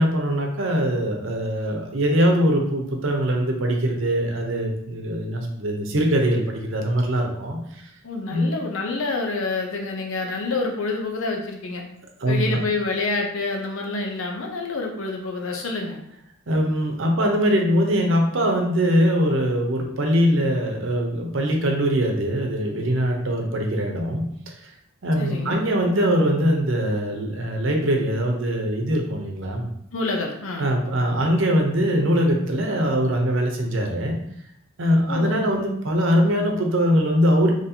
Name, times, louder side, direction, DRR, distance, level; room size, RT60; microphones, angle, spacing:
voice 1, 0.0-7.9 8.3-8.5 12.2-12.6 16.5-24.7 25.0-29.7 30.6-34.1 34.8-37.5, equal, 70° right, 2 dB, 0.8 m, -22 dB
voice 2, 8.0-11.8 12.3-16.0 25.2-25.6 29.9-30.7 35.1-35.4, left 3 dB, 80° left, 2 dB, 0.7 m, -27 dB
4.1 x 3.0 x 2.8 m, 0.72 s
head